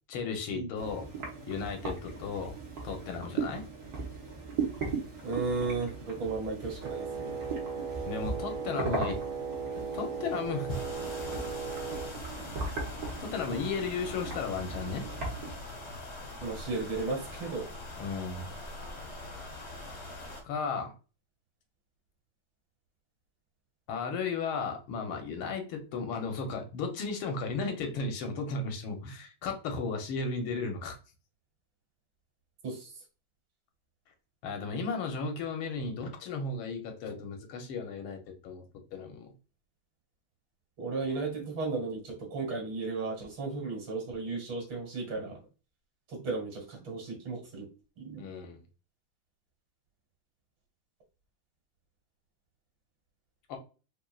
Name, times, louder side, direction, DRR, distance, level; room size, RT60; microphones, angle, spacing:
voice 1, 0.1-1.1 1.5-2.6 2.8-3.6 8.1-9.2 9.7-10.7 13.2-15.0 18.0-18.5 20.4-20.9 23.9-31.0 34.4-38.7 38.9-39.3 48.2-48.6 53.5-53.6, left 4 dB, 85° left, 4 dB, 1.8 m, -35 dB
sound 1, 0.8-15.5, right 4 dB, 50° right, 1.7 m, -38 dB
voice 2, 5.2-7.4 16.4-17.7 32.6-32.9 40.8-45.4 46.1-47.7 48.0-48.2, right 3 dB, 65° right, 0 dB, 2.5 m, -35 dB
Wind instrument woodwind instrument, 6.8-12.2, right 5 dB, 85° right, 1.5 m, -37 dB
sound 2, 10.7-20.4, left 2 dB, 40° left, 1.1 m, -43 dB
5.2 x 2.6 x 2.3 m, 0.34 s
omnidirectional pair, 2.3 m